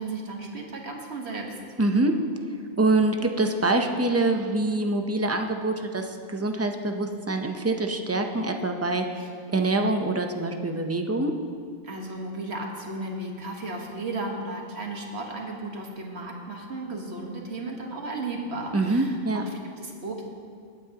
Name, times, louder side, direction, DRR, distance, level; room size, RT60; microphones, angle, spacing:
voice 1, 0.0-1.5 9.2-9.3 11.8-20.2, right 2 dB, 60° right, 1 dB, 1.5 m, -35 dB
voice 2, 1.8-2.1 2.8-9.2 9.5-11.3 18.7-19.4, right 2 dB, 20° right, 4 dB, 0.5 m, -25 dB
20.0 x 9.2 x 2.9 m, 2.3 s
omnidirectional pair, 1.2 m